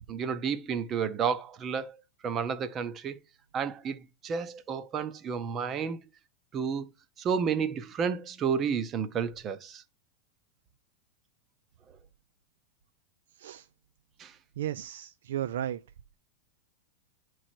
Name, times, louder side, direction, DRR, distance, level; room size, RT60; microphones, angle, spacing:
voice 1, 0.1-2.0 2.2-3.2 3.5-6.0 6.5-6.9 7.2-9.8 14.2-14.4, right 6 dB, 20° right, 0.6 m, -31 dB
voice 2, 13.3-13.7 14.6-15.8, right 11 dB, 80° right, 0.4 m, -34 dB
8.8 x 3.1 x 4.2 m
supercardioid pair, 165°, 0 cm